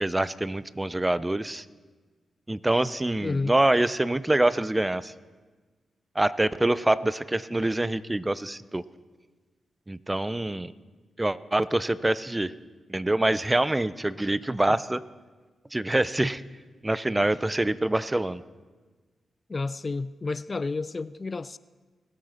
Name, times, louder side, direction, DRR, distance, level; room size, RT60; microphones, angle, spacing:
voice 1, 0.0-1.6 2.5-5.1 6.2-8.8 9.9-10.7 11.2-12.5 12.9-15.0 15.7-16.4 16.8-18.4, right 1 dB, 20° right, 17 dB, 0.5 m, -25 dB
voice 2, 3.2-3.5 14.7-14.8 19.5-21.6, left 3 dB, 40° left, 17 dB, 0.4 m, -31 dB
20.0 x 7.8 x 4.2 m, 1.3 s
supercardioid pair, 40°, 0 cm